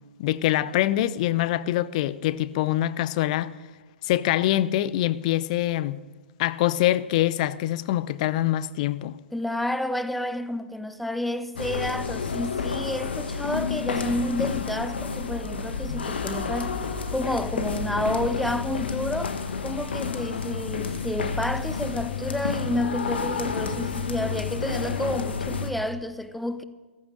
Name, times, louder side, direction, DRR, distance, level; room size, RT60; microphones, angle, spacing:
voice 1, 0.2-3.5 4.0-6.0 6.4-9.2, left 14 dB, 35° left, 0.6 m, -24 dB
voice 2, 9.3-19.4 19.6-26.6, left 1 dB, ahead, 0.6 m, -30 dB
sound 1, 11.6-25.7, left 5 dB, 60° left, 1.7 m, -30 dB
16.0 x 14.5 x 6.4 m
figure-of-eight pair, 115°, 6 cm